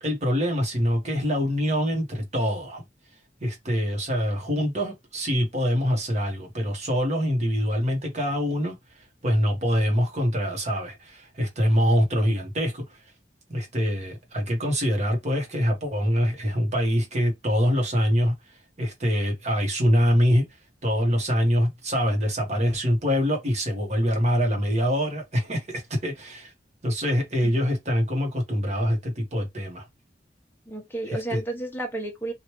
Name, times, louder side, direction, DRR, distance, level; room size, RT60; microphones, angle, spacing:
voice 1, 0.0-2.8 3.4-8.8 9.2-13.0 13.5-18.3 18.8-20.4 20.8-26.5 26.8-29.8 31.1-31.4, equal, 40° right, 1.2 m, -24 dB
voice 2, 30.7-32.3, right 2 dB, 10° left, 0.9 m, -32 dB
3.1 x 2.5 x 3.0 m
head